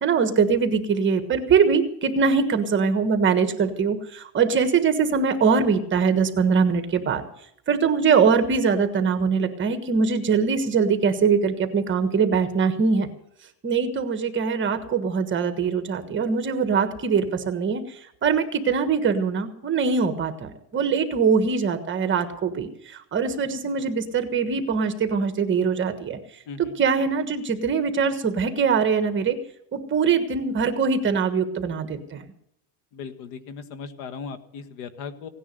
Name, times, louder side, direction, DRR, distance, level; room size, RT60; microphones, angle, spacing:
voice 1, 0.0-7.2 7.7-13.1 13.6-17.8 18.2-26.2 26.6-29.4 29.7-32.3, right 5 dB, 25° right, 8 dB, 1.4 m, -22 dB
voice 2, 32.9-35.3, left 5 dB, 65° left, 9 dB, 1.7 m, -37 dB
17.0 x 10.0 x 6.7 m, 0.75 s
cardioid pair, 160°, 45 cm